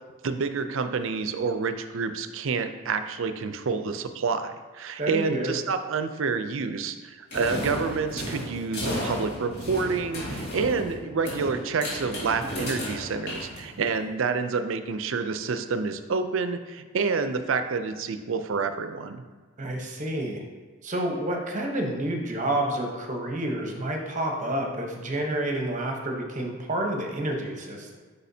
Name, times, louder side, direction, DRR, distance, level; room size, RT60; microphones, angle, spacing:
voice 1, 0.2-19.2, right 4 dB, 65° right, 9 dB, 0.5 m, -28 dB
voice 2, 5.0-5.5 19.6-20.4 20.8-28.0, right 1 dB, 35° right, 2 dB, 0.9 m, -29 dB
sound 1, 7.3-14.0, equal, 55° left, 2.0 m, -34 dB
8.4 x 5.4 x 2.7 m, 1.5 s
head